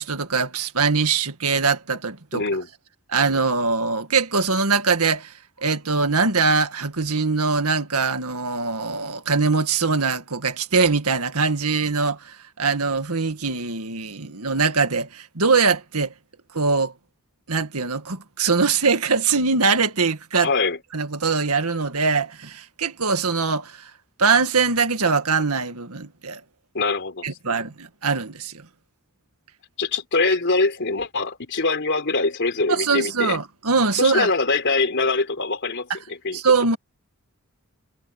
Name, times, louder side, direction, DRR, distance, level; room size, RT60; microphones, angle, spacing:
voice 1, 0.0-2.4 3.1-5.3 5.6-16.1 16.5-16.9 17.5-20.5 20.9-23.9 24.2-26.4 27.2-28.7 32.7-34.3 36.3-36.8, right 4 dB, 80° right, 1.9 m, -22 dB
voice 2, 2.3-2.7 20.4-20.8 26.7-27.4 29.8-33.4 33.9-36.4, left 3 dB, 55° left, 3.9 m, -23 dB
head